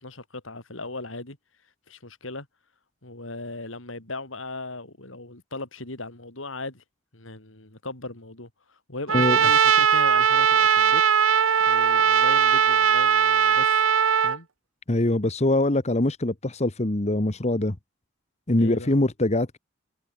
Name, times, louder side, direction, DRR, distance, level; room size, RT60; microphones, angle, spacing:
voice 1, 0.0-1.4 1.9-2.5 3.0-6.8 7.1-11.0 11.3-13.9 14.2-14.5 18.6-19.0, left 2 dB, 80° left, 4.3 m, -38 dB
Trumpet, 9.1-14.4, right 7 dB, 90° right, 0.9 m, -19 dB
voice 2, 14.9-17.8 18.5-19.6, left 1 dB, 35° left, 1.3 m, -23 dB
head